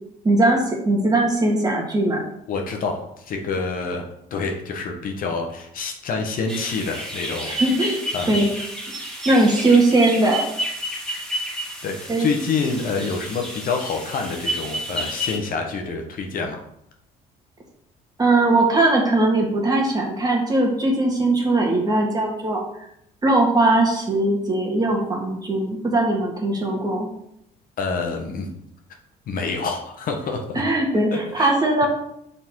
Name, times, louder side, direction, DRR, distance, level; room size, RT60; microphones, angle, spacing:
voice 1, 0.2-2.2 7.5-8.5 9.3-10.5 12.1-12.3 18.2-22.6 23.2-27.1 30.6-31.9, right 2 dB, 25° right, -1 dB, 1.8 m, -20 dB
voice 2, 2.5-7.6 8.1-8.3 11.8-16.6 27.8-28.5 29.3-30.6 31.1-31.5, left 4 dB, 55° left, 3 dB, 1.1 m, -27 dB
sound 1, 6.5-15.4, equal, 5° left, 1.7 m, -31 dB
5.7 x 4.1 x 4.6 m, 0.76 s
cardioid pair, 110°, 17 cm